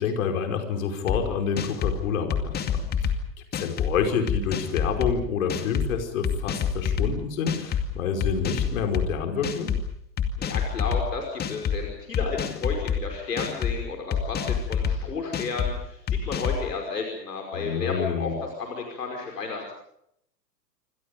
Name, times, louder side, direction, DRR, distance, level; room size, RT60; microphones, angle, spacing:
voice 1, 0.0-3.2 3.5-9.7 17.5-18.3, left 6 dB, 55° left, 5 dB, 5.2 m, -28 dB
sound 1, 1.1-1.2 1.6-2.0 2.3-3.2 3.5-3.9 4.3-5.1 5.5-5.9 6.2-7.1 7.5-7.8 8.2-9.1 9.4-9.8 10.2-11.0 11.4-11.8 12.1-13.0 13.4-13.7 14.1-15.0 15.3-15.7 16.1-16.6, left 8 dB, 20° left, 2.3 m, -26 dB
voice 2, 10.4-19.8, left 4 dB, 70° left, 2 dB, 5.4 m, -32 dB
28.0 x 26.0 x 5.3 m, 0.74 s
figure-of-eight pair, 100°, 50 cm